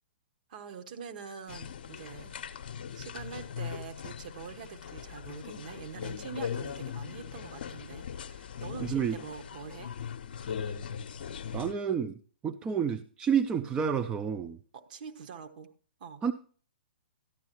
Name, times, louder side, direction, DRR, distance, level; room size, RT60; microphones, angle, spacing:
voice 1, 0.5-2.4 2.9-9.9 12.6-12.8 14.7-15.7 16.0-16.2, right 6 dB, 45° right, 6 dB, 1.1 m, -44 dB
sound 1, 1.5-11.7, left 7 dB, 55° left, 0.7 m, -40 dB
voice 2, 11.5-12.2 12.4-14.6 16.2-16.3, right 7 dB, 15° right, 8 dB, 0.4 m, -29 dB
13.0 x 10.5 x 2.9 m, 0.42 s
figure-of-eight pair, 120°, 6 cm